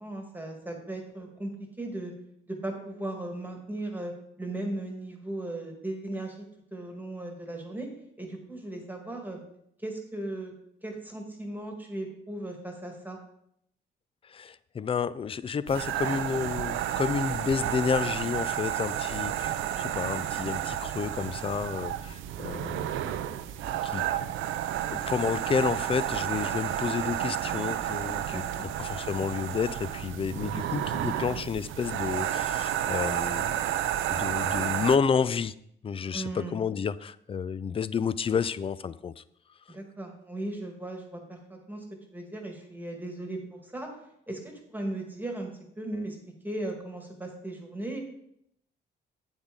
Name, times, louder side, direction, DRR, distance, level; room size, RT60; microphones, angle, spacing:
voice 1, 0.0-1.5 1.8-2.1 2.5-4.1 4.4-6.4 6.7-7.9 8.2-9.4 9.8-10.5 10.8-13.2 28.3-28.7 36.1-36.5 39.7-41.8 42.1-43.9 44.3-45.5 45.8-46.2 46.4-48.0, right 1 dB, 10° right, 3 dB, 1.6 m, -37 dB
voice 2, 14.2-23.3 23.7-24.0 24.9-33.6 34.1-35.5 35.8-39.2, left 6 dB, 30° left, 17 dB, 0.3 m, -30 dB
sound 1, 15.7-35.0, right 11 dB, 80° right, 0.5 m, -31 dB
8.1 x 7.1 x 3.7 m, 0.73 s
cardioid pair, 90°, 20 cm